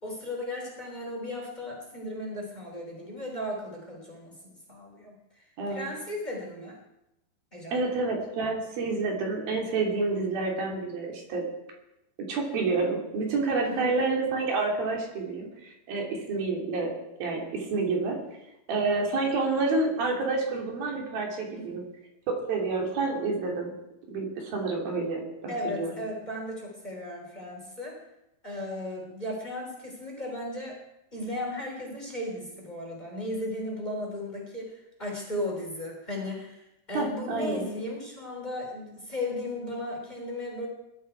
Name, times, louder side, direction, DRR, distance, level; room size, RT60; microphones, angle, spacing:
voice 1, 0.0-6.8 7.5-7.8 13.6-13.9 21.5-21.7 25.5-28.0 28.4-30.8 31.1-40.7, left 1 dB, 10° left, 0 dB, 3.4 m, -36 dB
voice 2, 7.7-11.4 12.3-16.9 17.2-18.2 18.7-21.8 22.3-23.8 24.1-25.9 36.9-37.7, right 3 dB, 70° right, 0 dB, 4.5 m, -29 dB
20.0 x 12.5 x 4.6 m, 0.89 s
omnidirectional pair, 4.4 m